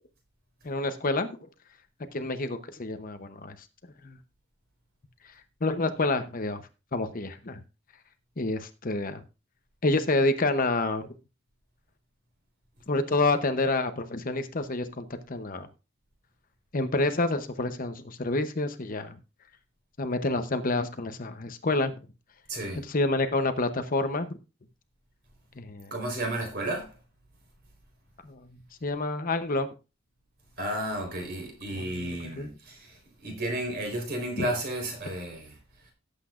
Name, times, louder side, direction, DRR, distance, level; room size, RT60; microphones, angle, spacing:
voice 1, 0.6-1.3 2.1-3.5 4.0-4.2 5.6-6.6 6.9-7.6 8.4-9.2 9.8-11.1 12.9-15.7 16.7-19.2 20.0-21.9 22.9-24.3 25.6-25.9 28.2-28.4 28.8-29.7 31.7-32.1 32.4-32.5 34.4-34.5, left 2 dB, 40° left, 0.8 m, -28 dB
voice 2, 22.5-22.8 25.9-26.9 30.6-35.5, right 1 dB, 45° right, 4.2 m, -33 dB
17.0 x 8.2 x 2.5 m
head